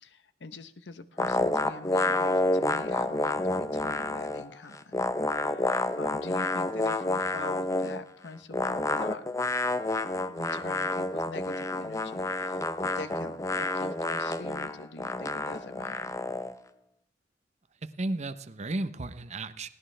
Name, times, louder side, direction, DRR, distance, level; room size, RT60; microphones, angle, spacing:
voice 1, 0.0-9.2 10.3-16.3, left 3 dB, 75° left, 12 dB, 0.9 m, -44 dB
sound 1, 1.2-4.5 4.7-8.0 8.5-16.5, left 2 dB, 20° left, 0.6 m, -29 dB
voice 2, 17.8-19.7, right 2 dB, 40° right, 12 dB, 0.7 m, -34 dB
18.5 x 17.0 x 3.3 m, 0.76 s
head